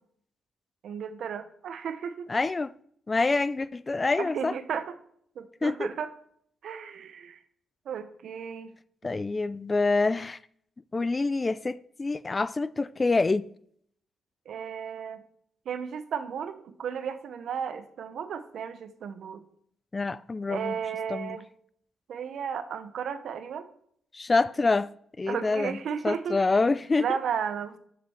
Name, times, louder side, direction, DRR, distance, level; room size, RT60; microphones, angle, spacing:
voice 1, 0.8-2.3 4.2-5.0 5.4-6.1 6.6-7.4 7.8-8.7 14.5-15.2 15.6-19.4 20.5-21.5 22.1-23.7 25.3-26.4 27.0-27.8, right 7 dB, 75° right, 0.9 m, -34 dB
voice 2, 2.3-2.7 3.1-4.5 5.6-5.9 9.0-10.4 10.9-13.4 19.9-20.8 21.1-21.4 24.1-24.9 25.2-25.8 26.0-27.0, left 3 dB, 30° left, 0.4 m, -26 dB
11.5 x 6.8 x 4.4 m
cardioid pair, 75°, 0 cm